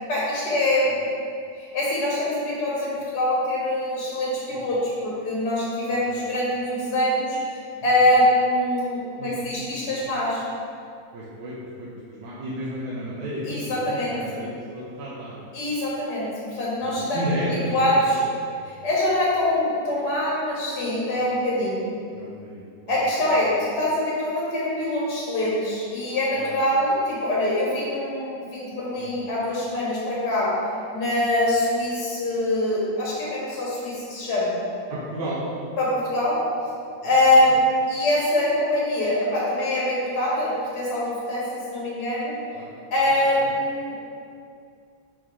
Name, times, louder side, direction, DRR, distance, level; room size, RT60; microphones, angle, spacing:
voice 1, 0.1-0.9 1.6-7.4 7.8-10.4 13.5-14.2 15.5-17.2 17.7-18.2 18.7-21.9 22.9-30.6 30.9-34.6 35.8-36.4 37.0-42.4 42.9-44.0, left 1 dB, 65° left, -6 dB, 2.1 m, -24 dB
voice 2, 9.7-10.0 11.1-15.4 16.8-18.2 21.2-21.3 22.1-23.0 26.3-26.5 29.0-29.2 34.9-35.4 37.0-37.1 42.5-42.7 43.0-43.1, equal, 80° right, -8 dB, 1.6 m, -33 dB
5.5 x 3.7 x 4.7 m, 2.4 s
omnidirectional pair, 1.9 m